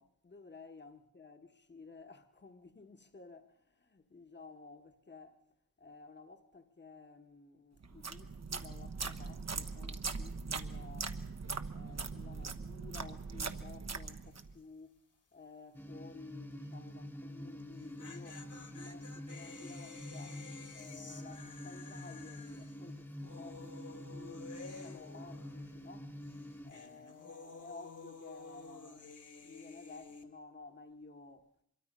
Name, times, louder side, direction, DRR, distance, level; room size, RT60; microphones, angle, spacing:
voice 1, 0.0-5.4 5.8-11.2 11.7-15.0 15.3-26.1 26.6-29.1 29.4-31.5, left 4 dB, 35° left, 1.4 m, -54 dB
sound 1, 7.8-14.5, right 4 dB, 50° right, 1.2 m, -41 dB
sound 2, 14.2-14.6 14.8-14.9 17.6-26.0 26.2-30.2, left 4 dB, 65° left, 2.7 m, -52 dB
sound 3, 15.7-26.7, equal, 5° left, 1.2 m, -47 dB
24.5 x 23.0 x 5.4 m
cardioid pair, 60°, 33 cm